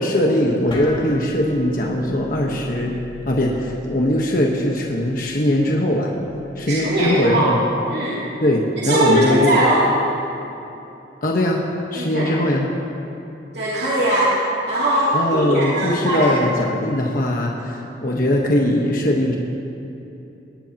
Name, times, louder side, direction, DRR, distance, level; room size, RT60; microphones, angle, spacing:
voice 1, 0.0-2.9 3.3-6.1 6.6-7.6 8.4-9.6 11.2-11.6 11.9-12.7 15.1-19.4, left 1 dB, 50° left, -1 dB, 1.3 m, -20 dB
sound 1, 0.7-7.4, left 1 dB, 30° left, 2.7 m, -39 dB
voice 2, 6.7-7.5 7.9-8.2 8.8-9.8 11.9-12.3 13.5-14.3 14.7-16.4, right 1 dB, 65° right, -9 dB, 2.8 m, -20 dB
19.5 x 19.0 x 3.0 m, 2.9 s
head